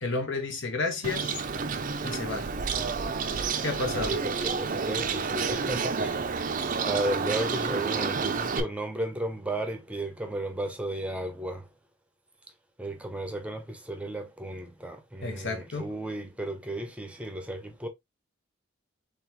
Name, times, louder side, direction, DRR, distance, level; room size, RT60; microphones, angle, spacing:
voice 1, 0.0-1.4 2.0-2.5 3.6-4.2 15.2-15.9, left 3 dB, 60° left, 1.2 m, -31 dB
Bird, 1.0-8.6, right 5 dB, 40° right, 0.5 m, -30 dB
voice 2, 3.9-6.2 6.8-11.7 12.8-17.9, right 1 dB, 5° right, 0.8 m, -34 dB
4.0 x 3.5 x 3.0 m
head